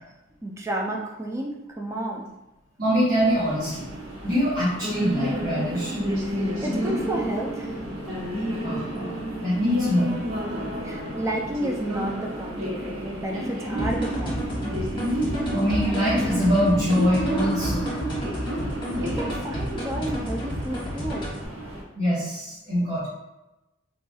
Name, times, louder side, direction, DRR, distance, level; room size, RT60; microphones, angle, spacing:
voice 1, 0.4-2.3 6.6-7.8 10.8-14.5 19.0-21.3, right 1 dB, 15° right, 0 dB, 0.4 m, -31 dB
voice 2, 2.8-3.9 4.2-6.0 8.6-10.2 15.1-17.9 21.9-23.1, equal, 50° right, -11 dB, 1.1 m, -24 dB
sound 1, 3.2-21.8, equal, 85° right, 0.8 m, -30 dB
sound 2, 13.8-21.4, equal, 25° left, 1.0 m, -32 dB
4.0 x 3.0 x 2.3 m, 1.0 s
head